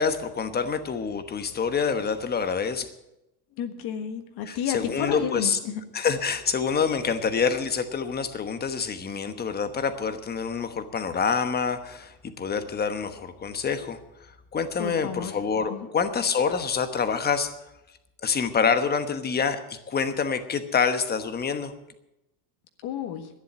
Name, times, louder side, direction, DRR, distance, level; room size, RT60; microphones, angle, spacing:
voice 1, 0.0-2.9 4.5-5.6 5.9-17.5 18.2-21.7, left 6 dB, 20° left, 9 dB, 1.1 m, -27 dB
voice 2, 3.6-5.8 14.8-15.3 15.7-15.9 22.8-23.3, left 9 dB, 50° left, 7 dB, 1.6 m, -31 dB
12.0 x 10.5 x 8.7 m, 0.90 s
cardioid pair, 145°, 48 cm